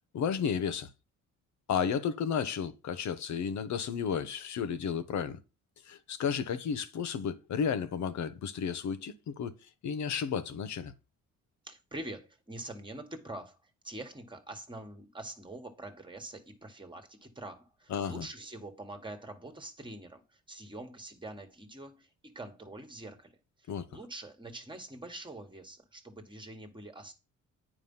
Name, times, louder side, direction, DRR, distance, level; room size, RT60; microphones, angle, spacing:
voice 1, 0.1-0.9 1.7-5.4 5.8-9.5 9.8-10.9 17.9-18.3 23.7-23.9, left 7 dB, 65° left, 1.2 m, -32 dB
voice 2, 11.6-27.1, right 1 dB, 15° right, 1.7 m, -45 dB
9.3 x 5.1 x 5.6 m
cardioid pair, 125°, 31 cm